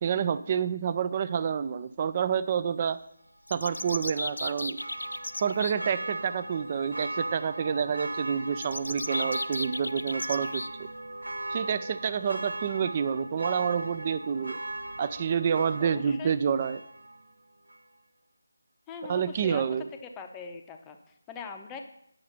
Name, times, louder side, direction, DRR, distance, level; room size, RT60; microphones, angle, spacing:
voice 1, 0.0-3.0 3.5-4.8 5.4-10.9 11.5-14.6 15.0-16.8 19.0-19.9, right 7 dB, 25° right, 14 dB, 0.4 m, -28 dB
sound 1, 3.5-5.7 8.6-10.7, left 2 dB, 65° left, 0.4 m, -35 dB
Church bell, 3.7-17.3 17.7-17.8, right 2 dB, 65° right, 0.8 m, -38 dB
voice 2, 15.8-16.3 18.9-19.9 20.2-21.8, left 5 dB, 10° left, 5 dB, 0.7 m, -42 dB
9.1 x 6.5 x 5.7 m, 0.72 s
figure-of-eight pair, 160°, 0 cm